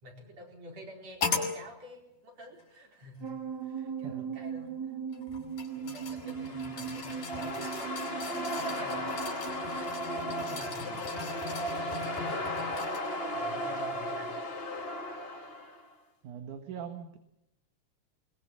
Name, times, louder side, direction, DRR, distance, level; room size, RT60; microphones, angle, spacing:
voice 1, 0.0-4.9 5.7-7.9 8.5-9.1 10.5-14.3, left 1 dB, 55° right, 2 dB, 5.6 m, -49 dB
sound 1, 1.2-1.6 2.6-2.7 5.1-13.2 13.7-13.8, left 5 dB, 90° left, 6.1 m, -39 dB
sound 2, 3.2-10.6, right 7 dB, 35° right, 2.7 m, -39 dB
sound 3, 6.0-15.8, equal, 20° left, 1.9 m, -36 dB
voice 2, 10.8-11.1 16.2-17.2, right 7 dB, 75° right, 6 dB, 3.0 m, -42 dB
22.5 x 21.5 x 7.5 m, 0.82 s
omnidirectional pair, 3.5 m